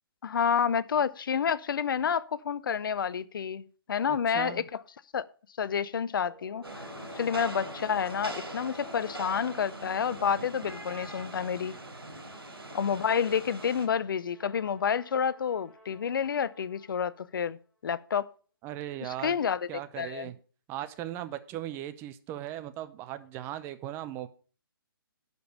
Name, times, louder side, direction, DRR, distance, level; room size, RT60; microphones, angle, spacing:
voice 1, 0.2-4.8 5.1-5.3 5.6-6.7 7.1-11.7 12.7-17.6 17.8-18.3 19.0-19.6 20.0-20.3, left 7 dB, 60° left, 0.6 m, -29 dB
voice 2, 4.1-4.6 18.6-19.4 19.7-20.4 20.7-24.3, right 13 dB, 20° right, 0.6 m, -38 dB
sound 1, 6.2-10.8 14.2-17.1, left 1 dB, 10° left, 2.1 m, -50 dB
Rain, 6.6-13.9, right 1 dB, 90° right, 4.1 m, -42 dB
11.0 x 5.3 x 6.5 m
hypercardioid pair, 145°, 12 cm